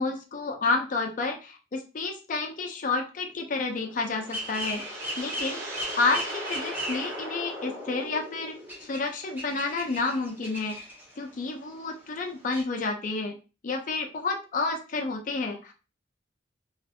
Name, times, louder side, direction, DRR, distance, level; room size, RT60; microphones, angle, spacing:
voice 1, 0.0-4.8 5.2-10.8 11.2-13.4 13.6-15.7, left 3 dB, 45° left, 3 dB, 0.4 m, -30 dB
sound 1, 3.7-8.9, equal, 80° right, 0.8 m, -38 dB
sound 2, 4.1-7.4 7.8-7.9 8.2-8.3 8.7-11.2 11.5-11.6 11.8-11.9 12.1-12.2 12.5-12.6, right 1 dB, 10° right, 0.6 m, -37 dB
2.4 x 2.3 x 2.6 m, 0.32 s
head